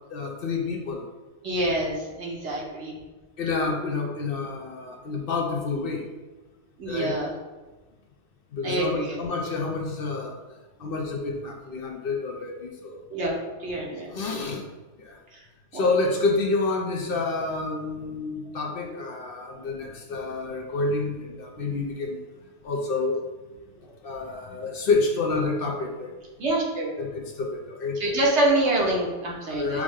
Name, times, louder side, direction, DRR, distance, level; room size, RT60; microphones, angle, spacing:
voice 1, 0.1-1.0 3.4-6.1 6.9-7.1 8.5-10.4 10.8-13.0 14.1-14.6 15.0-15.1 15.7-22.2 22.6-23.2 24.0-26.1 27.0-28.0 29.4-29.8, left 3 dB, 60° left, 1 dB, 0.8 m, -28 dB
voice 2, 1.4-3.0 6.8-7.3 8.6-9.2 13.1-14.1 15.3-15.4 15.7-15.8 26.4-27.0 28.0-29.8, right 1 dB, 80° right, -2 dB, 1.3 m, -26 dB
6.0 x 2.1 x 3.6 m, 1.2 s
omnidirectional pair, 1.1 m